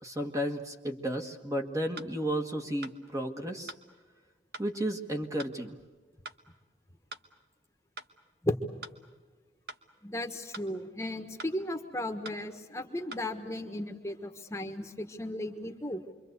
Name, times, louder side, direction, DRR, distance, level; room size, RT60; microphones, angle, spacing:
voice 1, 0.0-3.7 4.6-5.8, equal, 20° right, 4 dB, 1.5 m, -33 dB
sound 1, 2.0-2.1 2.8-3.0 3.7-3.8 4.5-4.7 5.4-5.6 6.2-6.4 7.1-7.3 8.0-8.1 8.8-9.0 9.7-9.8 10.5-10.7 11.4-11.6 12.2-12.4 13.1-13.3, right 3 dB, 65° right, 1.3 m, -44 dB
voice 2, 10.0-16.0, left 1 dB, 15° left, 6 dB, 1.4 m, -35 dB
27.5 x 24.0 x 8.1 m, 1.3 s
head